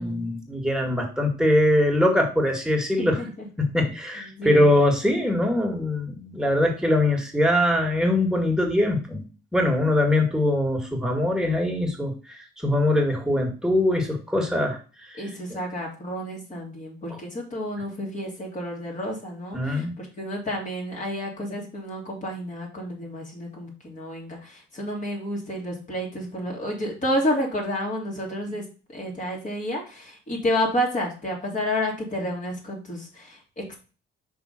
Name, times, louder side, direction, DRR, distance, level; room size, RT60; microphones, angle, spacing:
voice 1, 0.0-3.2 3.6-9.2 9.5-14.8 15.1-15.2 19.5-19.9, left 1 dB, 5° right, 1 dB, 1.9 m, -22 dB
voice 2, 3.0-3.5 4.2-4.8 15.2-28.6 28.9-33.8, equal, 40° left, -1 dB, 3.1 m, -30 dB
5.6 x 3.9 x 5.9 m, 0.35 s
cardioid pair, 90°, 20 cm